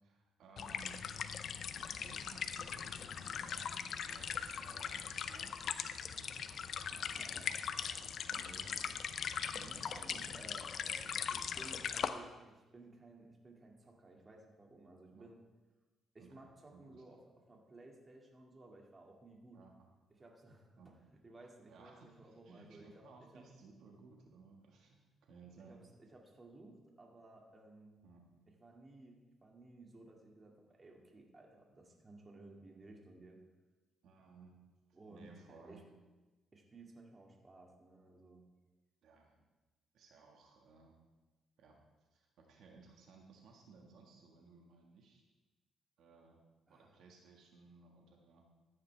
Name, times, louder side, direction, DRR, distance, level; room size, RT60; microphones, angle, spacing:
voice 1, 0.0-1.1 2.0-6.5 6.9-7.1 8.3-8.9 9.5-10.4 10.9-11.2 15.1-15.3 16.2-16.4 16.7-17.0 19.5-19.9 20.8-20.9 21.7-26.0 28.0-28.4 34.0-34.6 35.1-35.8 39.0-39.3 39.9-40.9 41.6-41.8 42.1-45.2 46.0-46.4 46.7-48.4, right 4 dB, 75° right, 1 dB, 1.7 m, -60 dB
sound 1, 0.6-12.1, left 7 dB, 60° left, 0.6 m, -40 dB
voice 2, 6.9-7.9 8.4-8.9 9.8-15.4 16.1-17.2 17.5-19.6 20.2-20.7 21.2-23.0 23.3-23.4 25.6-28.0 28.5-33.4 34.9-35.8 36.5-38.5 46.7-47.0, right 2 dB, 30° right, 0 dB, 2.3 m, -57 dB
14.5 x 9.6 x 3.4 m, 1.1 s
cardioid pair, 90°, 0 cm